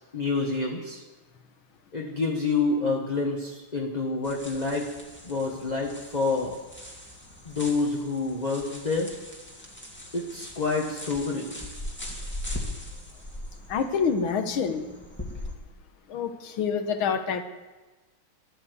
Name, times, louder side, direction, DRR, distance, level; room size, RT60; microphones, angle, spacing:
voice 1, 0.1-1.0 1.9-4.9 5.2-6.6 7.4-9.1 10.1-11.6, left 3 dB, 25° left, -1 dB, 1.4 m, -28 dB
sound 1, 4.2-15.5, left 1 dB, 5° left, 2.1 m, -40 dB
voice 2, 13.7-14.9 16.1-17.4, left 6 dB, 90° left, 8 dB, 2.0 m, -27 dB
13.0 x 12.5 x 8.2 m, 1.2 s
omnidirectional pair, 2.2 m